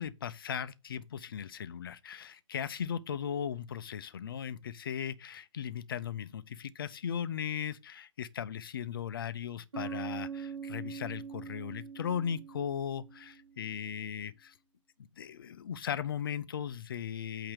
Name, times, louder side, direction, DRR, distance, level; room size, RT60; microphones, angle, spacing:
voice 1, 0.0-14.5 15.2-17.5, left 8 dB, 40° left, 0.6 m, -37 dB
Bass guitar, 9.7-13.6, right 6 dB, 65° right, 1.4 m, -42 dB
8.6 x 2.9 x 6.2 m
figure-of-eight pair, 135°, 17 cm